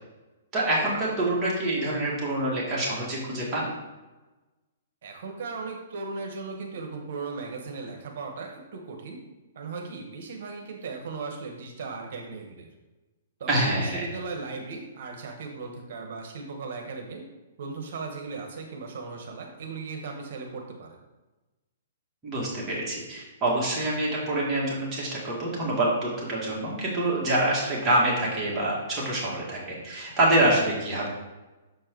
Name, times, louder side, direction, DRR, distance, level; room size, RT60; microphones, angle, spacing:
voice 1, 0.5-3.7 13.5-14.1 22.2-31.1, right 1 dB, 15° right, -6 dB, 1.9 m, -26 dB
voice 2, 5.0-9.2 9.5-12.7 13.4-17.3 17.6-21.0, right 4 dB, 55° right, 2 dB, 1.2 m, -37 dB
6.9 x 4.6 x 4.5 m, 1.1 s
hypercardioid pair, 160°, 0 cm